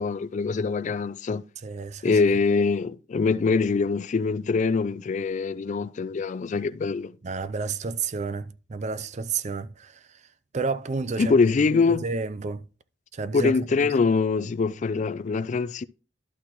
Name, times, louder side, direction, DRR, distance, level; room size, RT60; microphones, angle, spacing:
voice 1, 0.0-1.4 2.0-7.2 11.2-12.0 13.3-15.8, left 4 dB, 40° left, 0.3 m, -24 dB
voice 2, 1.6-2.2 7.2-10.2 10.5-11.3 11.7-12.7 13.1-13.6, right 4 dB, 40° right, 0.4 m, -31 dB
11.5 x 5.9 x 3.0 m
head